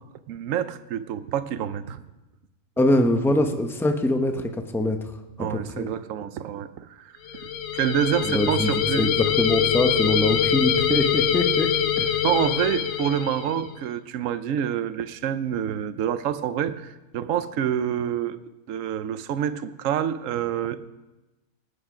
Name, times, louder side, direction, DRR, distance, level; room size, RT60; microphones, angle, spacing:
voice 1, 0.3-2.0 5.4-9.1 12.2-18.4 18.7-20.9, right 9 dB, 75° right, 12 dB, 1.0 m, -27 dB
voice 2, 2.8-5.9 8.2-12.2, left 1 dB, ahead, 6 dB, 0.6 m, -24 dB
sound 1, 7.3-13.7, left 9 dB, 75° left, 1.1 m, -24 dB
19.0 x 8.1 x 5.0 m, 1.1 s
omnidirectional pair, 1.4 m